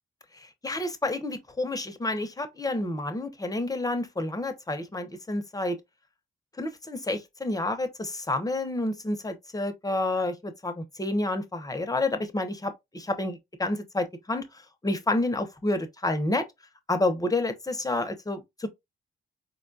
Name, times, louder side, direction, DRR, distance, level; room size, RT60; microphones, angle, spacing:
voice 1, 0.4-5.8 6.6-14.5 14.8-16.4 16.9-18.7, left 2 dB, 15° left, 0.7 m, -29 dB
4.2 x 2.2 x 2.6 m
cardioid pair, 75°, 21 cm